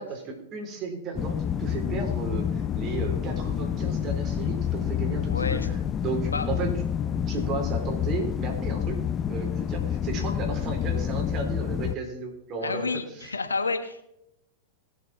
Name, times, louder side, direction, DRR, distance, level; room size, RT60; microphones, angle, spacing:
voice 1, 0.0-6.8 7.3-9.0 9.3-13.3, right 4 dB, 40° right, 2 dB, 4.0 m, -34 dB
sound 1, 1.2-11.9, left 9 dB, 30° left, 0.6 m, -28 dB
voice 2, 5.3-5.7 6.3-6.5 12.6-14.0, left 4 dB, 90° left, 9 dB, 1.3 m, -29 dB
19.5 x 7.2 x 4.4 m, 0.83 s
hypercardioid pair, 95°, 0 cm